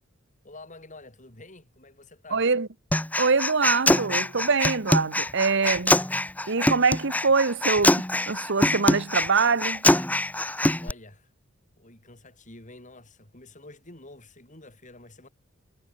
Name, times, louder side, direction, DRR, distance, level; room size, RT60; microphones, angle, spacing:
voice 1, 0.4-2.4 10.8-11.3 11.8-15.3, left 2 dB, 40° left, 6.4 m, -48 dB
voice 2, 2.3-2.7 3.2-6.0 6.5-9.8, right 4 dB, 65° right, 1.1 m, -24 dB
Human voice, 2.9-10.9, left 1 dB, 10° left, 1.2 m, -24 dB
head